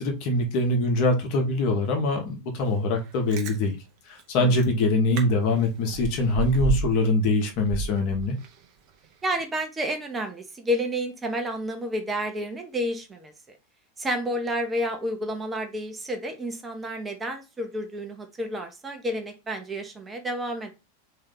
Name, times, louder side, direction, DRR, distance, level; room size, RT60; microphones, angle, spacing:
voice 1, 0.0-3.8 4.1-8.4, left 2 dB, 45° left, 1.1 m, -23 dB
Chewing mastication, 3.1-3.6 4.2-4.3 4.5-4.7 5.1-5.2 5.6-7.1 7.4-8.6 9.0-9.1, right 5 dB, 40° right, 0.8 m, -30 dB
voice 2, 9.2-13.3 14.0-20.7, equal, 15° right, 0.8 m, -30 dB
3.7 x 2.8 x 3.6 m
figure-of-eight pair, 90°, 0 cm